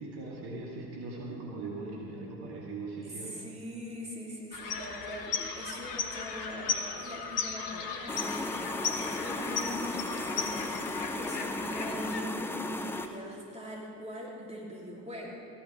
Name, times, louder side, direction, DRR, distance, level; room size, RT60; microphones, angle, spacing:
voice 1, 0.0-3.5 6.8-6.9, right 3 dB, 45° right, -2 dB, 2.2 m, -40 dB
voice 2, 3.0-15.4, equal, 15° right, -3 dB, 2.9 m, -42 dB
sound 1, 4.5-12.2, left 5 dB, 70° left, 1.3 m, -36 dB
sound 2, 8.1-13.1, left 2 dB, 5° left, 0.4 m, -35 dB
15.5 x 11.5 x 4.7 m, 2.6 s
figure-of-eight pair, 70°, 49 cm